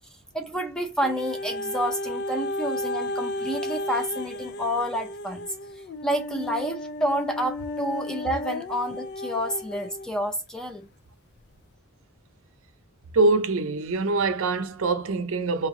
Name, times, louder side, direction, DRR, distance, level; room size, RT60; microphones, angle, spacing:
voice 1, 0.3-5.4 6.0-10.9, equal, 5° left, 0.6 m, -29 dB
sound 1, 1.0-10.1 10.8-10.9, left 1 dB, 50° left, 0.4 m, -33 dB
voice 2, 13.1-15.7, right 3 dB, 65° right, 0.5 m, -24 dB
3.1 x 2.9 x 3.7 m
head